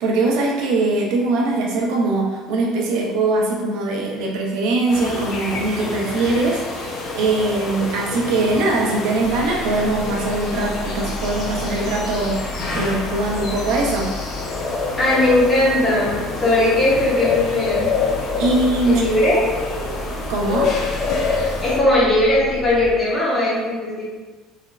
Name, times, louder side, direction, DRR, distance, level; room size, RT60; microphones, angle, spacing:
voice 1, 0.0-14.1 18.4-19.0 20.3-20.7, right 2 dB, 70° right, -1 dB, 0.9 m, -21 dB
sound 1, 4.9-21.8, left 4 dB, 45° left, 0.8 m, -27 dB
sound 2, 9.2-22.9, left 2 dB, 10° right, 0.8 m, -34 dB
voice 2, 14.9-17.9 18.8-19.4 21.6-24.0, left 1 dB, 10° left, -9 dB, 1.4 m, -18 dB
4.2 x 3.7 x 2.5 m, 1.3 s
cardioid pair, 145°, 0 cm